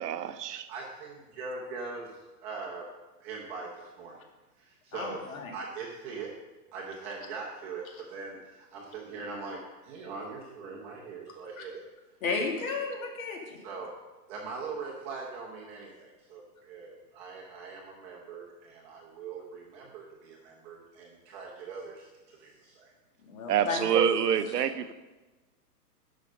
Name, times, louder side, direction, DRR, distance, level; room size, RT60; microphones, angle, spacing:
voice 1, 0.0-0.7 23.5-24.9, right 8 dB, 75° right, 0.9 m, -26 dB
voice 2, 0.7-2.8 3.2-4.2 4.6-5.3 5.5-6.3 6.7-9.6 9.8-11.8 12.4-12.5 13.6-13.9 14.3-22.9, right 4 dB, 15° right, 0.8 m, -41 dB
voice 3, 4.9-5.5 11.6-11.7 12.2-13.6 23.2-23.8, left 4 dB, 55° left, 2.4 m, -33 dB
11.0 x 6.4 x 5.3 m
hypercardioid pair, 170°, 48 cm